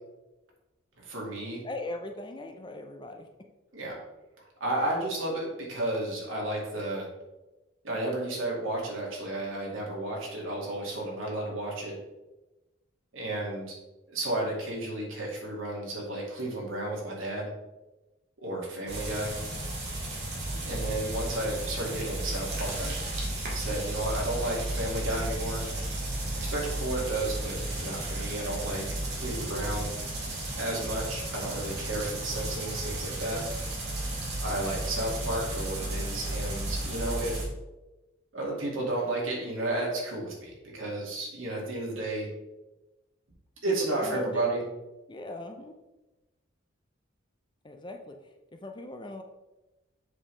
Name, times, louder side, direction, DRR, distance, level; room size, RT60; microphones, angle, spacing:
voice 1, 1.0-1.6 3.7-3.9 4.6-7.1 7.8-12.0 13.1-13.8 14.1-17.5 18.4-19.3 20.6-23.0 23.5-25.6 26.3-28.8 29.1-29.9 30.6-33.4 34.4-37.4 38.3-42.3 43.6-44.6, right 1 dB, 80° right, -2 dB, 2.1 m, -32 dB
voice 2, 1.6-3.3 20.5-20.8 43.7-44.6 45.1-45.7 47.6-48.2 48.5-49.2, left 2 dB, 25° left, 5 dB, 0.5 m, -39 dB
sound 1, 18.9-37.4, right 1 dB, 55° right, 2.0 m, -34 dB
7.3 x 5.4 x 3.2 m, 1.0 s
head